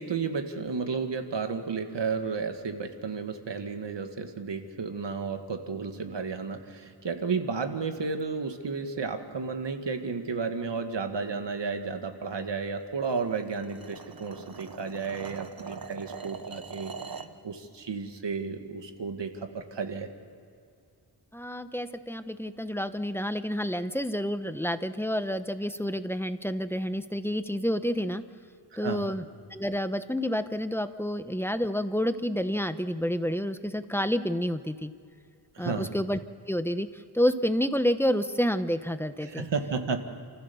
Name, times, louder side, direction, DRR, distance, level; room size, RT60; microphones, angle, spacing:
voice 1, 0.0-16.9 17.4-20.1 28.7-29.2 35.6-36.0 39.2-40.0, right 5 dB, 75° right, 6 dB, 1.9 m, -32 dB
sound 1, 13.0-17.4, right 5 dB, 50° right, 1.2 m, -42 dB
voice 2, 21.3-28.2 28.8-29.2 29.5-34.9 35.6-36.2 36.5-39.5, equal, 5° left, 10 dB, 0.9 m, -29 dB
28.5 x 15.0 x 7.0 m, 2.4 s
wide cardioid pair, 70°, 43 cm